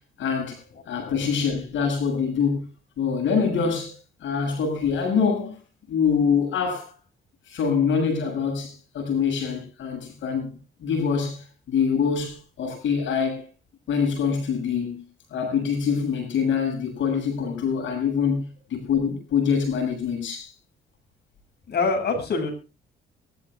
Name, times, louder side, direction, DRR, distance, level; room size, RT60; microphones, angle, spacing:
voice 1, 0.2-0.6 0.9-2.7 3.0-3.9 4.2-5.6 5.9-6.9 7.5-13.4 13.9-15.0 15.3-20.5, left 6 dB, 70° left, 7.5 m, -25 dB
voice 2, 0.7-1.2 21.7-22.5, left 4 dB, 55° left, 8.0 m, -26 dB
23.0 x 14.0 x 2.4 m
cardioid pair, 90°, 20 cm